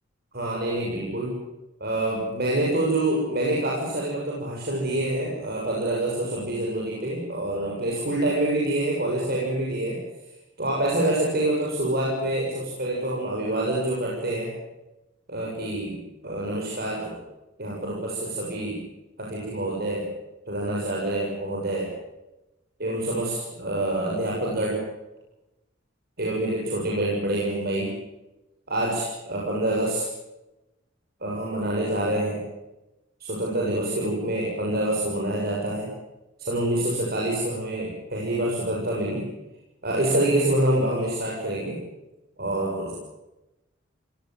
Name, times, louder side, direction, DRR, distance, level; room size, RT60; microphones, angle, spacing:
voice 1, 0.3-1.4 1.8-10.0 10.6-14.5 15.3-16.0 16.2-17.2 17.6-18.8 19.2-20.1 20.5-21.9 22.8-24.8 26.2-27.9 28.7-30.0 31.2-32.4 33.2-35.9 36.4-39.2 39.8-41.8 42.4-43.0, right 1 dB, 55° right, -3 dB, 6.9 m, -26 dB
26.5 x 18.5 x 7.6 m, 0.98 s
head